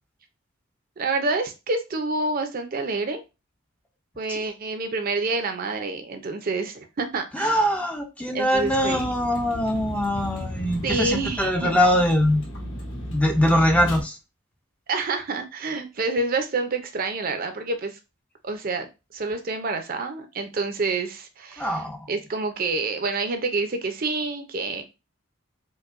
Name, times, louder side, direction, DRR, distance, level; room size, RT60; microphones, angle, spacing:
voice 1, 1.0-3.2 4.2-7.5 8.3-9.0 10.8-11.8 14.9-18.0 18.4-21.7 22.1-24.8, right 3 dB, 45° right, 0.5 m, -28 dB
voice 2, 7.3-12.4 13.1-14.2 21.6-22.1, equal, 5° left, 0.4 m, -22 dB
Vehicle, 8.5-14.0, equal, 65° left, 1.9 m, -34 dB
4.5 x 2.2 x 2.5 m
head